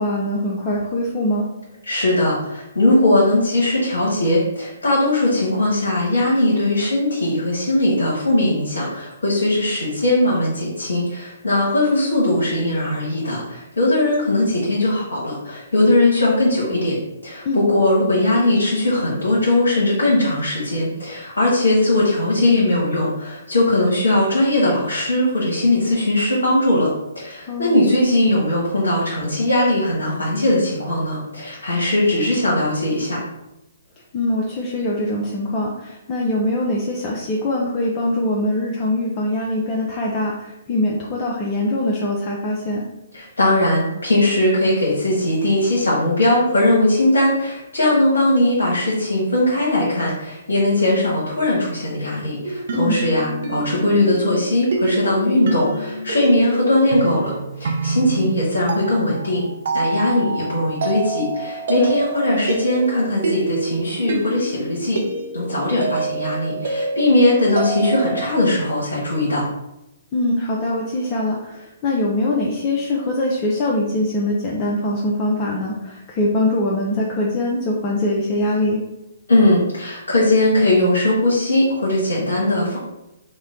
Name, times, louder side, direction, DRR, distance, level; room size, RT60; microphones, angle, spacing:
voice 1, 0.0-1.5 17.4-17.6 27.5-27.8 34.1-42.8 52.7-53.0 61.8-61.9 70.1-78.8, left 1 dB, 30° left, -3 dB, 0.5 m, -22 dB
voice 2, 1.8-17.0 17.2-26.9 27.1-33.2 43.1-57.3 57.6-59.4 59.7-65.0 65.3-69.4 79.3-82.8, left 1 dB, 80° left, -5 dB, 0.9 m, -19 dB
sound 1, 52.4-68.3, right 3 dB, 60° right, 0.5 m, -27 dB
3.0 x 2.1 x 3.7 m, 0.91 s
figure-of-eight pair, 130°, 0 cm